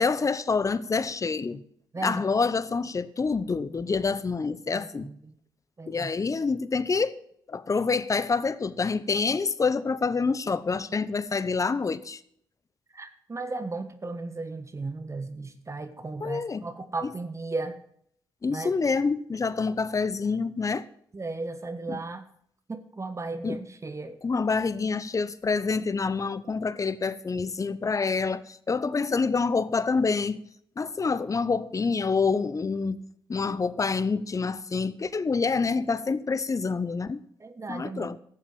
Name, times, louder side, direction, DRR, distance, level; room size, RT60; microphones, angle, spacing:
voice 1, 0.0-1.6 2.0-5.1 5.9-7.2 7.5-12.2 16.2-16.7 17.0-17.1 18.4-20.9 21.9-22.0 23.4-23.6 24.2-30.4 30.8-37.2 37.7-38.2, left 4 dB, 35° left, 0.9 m, -27 dB
voice 2, 4.7-5.2 5.8-6.1 12.9-17.8 18.5-18.7 21.1-22.2 22.7-24.2 37.4-38.1, right 3 dB, 35° right, 1.5 m, -35 dB
13.0 x 7.3 x 7.0 m
supercardioid pair, 50°, 9 cm